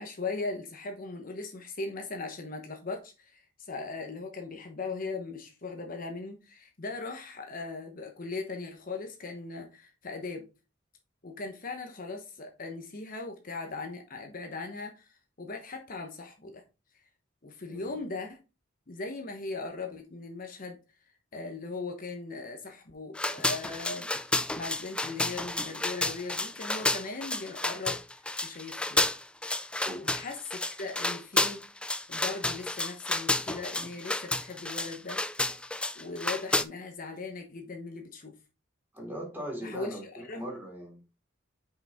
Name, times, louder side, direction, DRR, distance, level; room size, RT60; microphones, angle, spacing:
voice 1, 0.0-10.5 11.2-16.6 17.4-18.4 18.9-20.8 21.3-28.0 28.4-29.1 29.9-31.6 32.1-35.2 35.9-38.3 39.6-40.0 40.3-40.4, left 3 dB, 45° left, 1.0 m, -39 dB
sound 1, 23.2-36.6, left 2 dB, 5° left, 0.3 m, -31 dB
voice 2, 38.9-41.0, equal, 10° right, 2.7 m, -39 dB
6.2 x 5.2 x 3.5 m
head